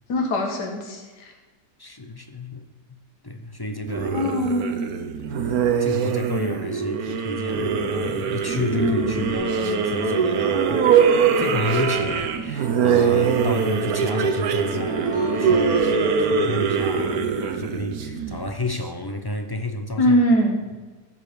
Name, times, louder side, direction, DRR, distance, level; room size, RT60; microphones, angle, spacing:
voice 1, 0.1-1.3 4.1-4.9 8.7-9.3 20.0-20.6, equal, 85° left, 2 dB, 1.9 m, -22 dB
voice 2, 1.8-2.7 3.2-4.3 5.3-10.9 11.3-20.2, left 2 dB, 30° left, 6 dB, 0.4 m, -31 dB
sound 1, 3.9-18.8, right 6 dB, 65° right, 1.3 m, -22 dB
sound 2, 9.3-16.4, right 1 dB, 50° right, 3.7 m, -35 dB
14.5 x 5.8 x 6.9 m, 1.3 s
omnidirectional pair, 1.7 m